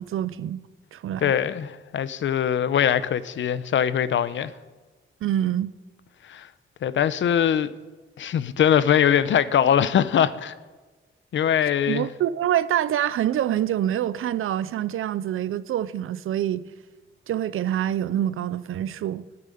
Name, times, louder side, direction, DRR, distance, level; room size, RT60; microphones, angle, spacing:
voice 1, 0.0-1.3 5.2-5.7 11.9-16.7 17.3-19.3, right 11 dB, 80° right, 0.6 m, -26 dB
voice 2, 1.2-4.5 6.3-6.5 6.8-7.7 8.2-10.5 11.3-12.1, left 9 dB, 65° left, 0.7 m, -22 dB
14.0 x 8.8 x 10.0 m
wide cardioid pair, 175°, 21 cm